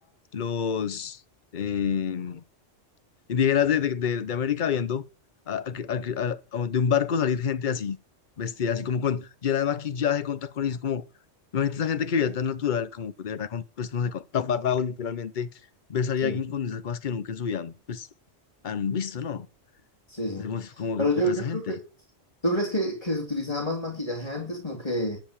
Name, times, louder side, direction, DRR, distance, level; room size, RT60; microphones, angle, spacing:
voice 1, 0.3-1.2 1.5-2.4 3.3-5.0 5.5-8.0 8.4-11.0 11.5-15.5 15.9-18.1 18.6-19.5 20.4-21.7, left 7 dB, 50° left, 0.9 m, -27 dB
voice 2, 20.1-20.5 21.0-21.8 22.4-25.2, equal, 30° left, 3.1 m, -28 dB
12.5 x 5.3 x 8.8 m
omnidirectional pair, 1.2 m